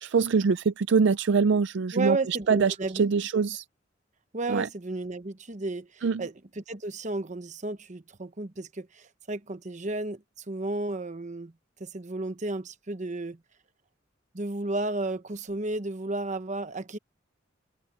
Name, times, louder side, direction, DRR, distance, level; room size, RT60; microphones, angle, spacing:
voice 1, 0.0-3.6 4.5-4.7 6.0-6.2, right 5 dB, 60° right, 0.4 m, -24 dB
voice 2, 1.9-3.1 4.3-11.5 11.8-13.4 14.3-17.0, right 2 dB, 40° right, 1.0 m, -33 dB
head